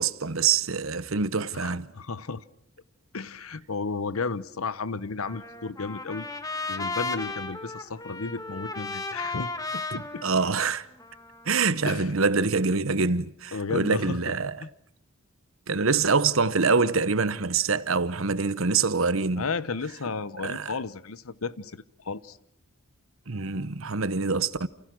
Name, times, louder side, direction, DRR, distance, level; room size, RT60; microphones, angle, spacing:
voice 1, 0.0-1.9 10.2-10.9 11.5-14.5 15.7-19.4 20.4-20.7 23.3-24.7, right 4 dB, 70° right, 1.1 m, -25 dB
voice 2, 1.5-2.4 3.1-6.3 6.7-10.2 11.9-12.1 13.5-14.3 14.6-14.7 19.4-22.4, left 4 dB, 80° left, 1.0 m, -33 dB
Trumpet, 5.3-11.5, left 3 dB, 15° left, 1.5 m, -35 dB
29.5 x 28.5 x 6.2 m
head